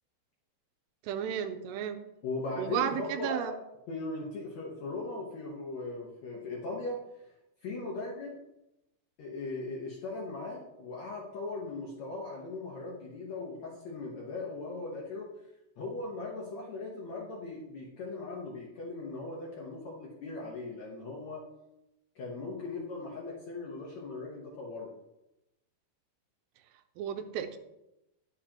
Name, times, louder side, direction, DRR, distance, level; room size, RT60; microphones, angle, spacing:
voice 1, 1.0-2.0 2.6-3.5 27.0-27.6, right 9 dB, 90° right, 9 dB, 2.8 m, -33 dB
voice 2, 2.2-3.6 3.9-7.0 7.6-8.4 9.2-15.4 15.8-21.5 22.1-24.9, left 3 dB, 75° left, -4 dB, 1.6 m, -39 dB
10.0 x 7.5 x 2.9 m, 0.90 s
omnidirectional pair, 4.8 m